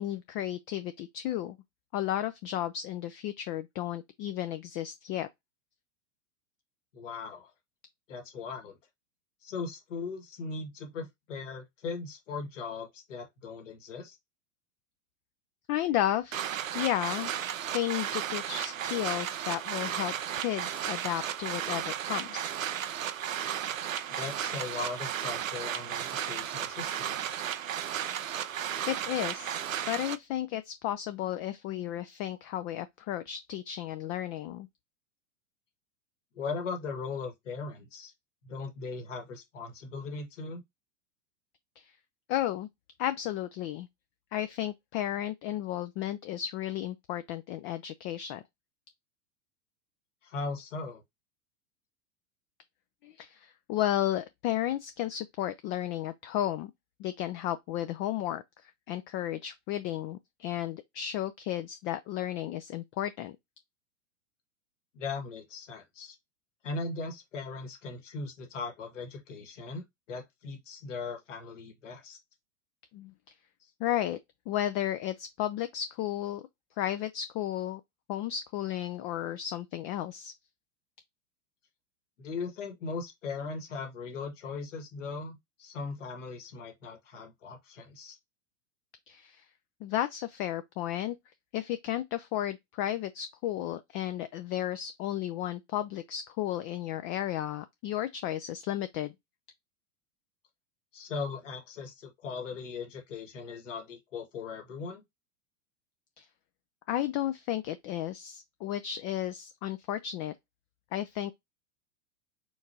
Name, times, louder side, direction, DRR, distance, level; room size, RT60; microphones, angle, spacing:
voice 1, 0.0-1.6 1.9-5.3 15.7-16.4 16.7-17.3 17.7-22.5 28.9-29.6 29.9-34.7 41.8-41.9 42.3-42.7 43.0-43.9 44.3-48.4 53.0-56.7 57.0-58.4 58.9-63.4 72.9-73.1 73.8-74.2 74.5-76.4 76.8-77.8 78.1-80.3 89.1-89.5 89.8-91.2 91.5-99.1 106.2-106.3 106.9-110.3 110.9-111.3, left 12 dB, 30° left, 0.4 m, -33 dB
voice 2, 6.9-7.5 8.1-8.8 9.4-14.2 24.1-27.4 36.3-38.1 38.4-40.6 50.2-51.0 64.9-66.2 66.6-72.2 82.2-88.2 100.9-105.0, left 4 dB, 70° left, 1.9 m, -39 dB
sound 1, 16.3-30.2, right 10 dB, 85° right, 0.6 m, -34 dB
4.4 x 3.6 x 2.8 m
hypercardioid pair, 95°, 39 cm